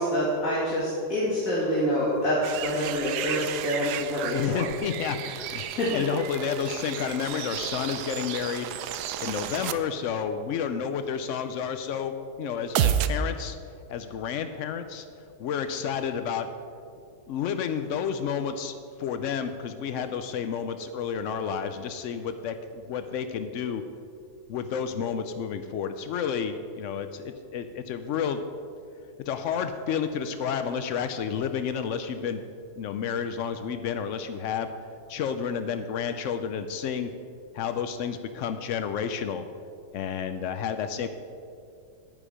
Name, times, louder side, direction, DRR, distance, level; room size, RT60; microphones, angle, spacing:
voice 1, 0.0-4.6 5.5-6.0, equal, 50° left, -8 dB, 2.6 m, -27 dB
sound 1, 2.4-9.7 12.8-13.1, right 11 dB, 75° right, 1.1 m, -32 dB
voice 2, 4.3-5.6 5.9-8.7 9.2-12.1 12.4-13.6 13.9-15.1 15.4-16.5 17.3-23.8 24.5-28.4 29.3-32.4 32.8-34.7 35.1-37.1 37.5-39.4 39.9-41.1, left 7 dB, 85° left, 9 dB, 0.6 m, -30 dB
9.8 x 9.5 x 5.0 m, 2.4 s
omnidirectional pair, 1.9 m